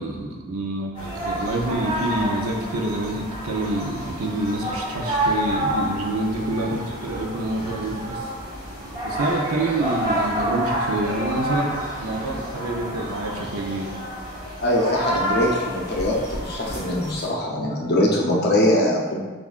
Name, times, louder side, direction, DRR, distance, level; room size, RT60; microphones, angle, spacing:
voice 1, 0.0-8.3 9.0-13.9, right 2 dB, 85° right, 1 dB, 0.7 m, -27 dB
sound 1, 0.9-17.3, right 1 dB, 20° right, 1.4 m, -29 dB
voice 2, 14.6-19.2, left 1 dB, 50° left, -2 dB, 0.7 m, -22 dB
7.0 x 2.5 x 2.4 m, 1.3 s
head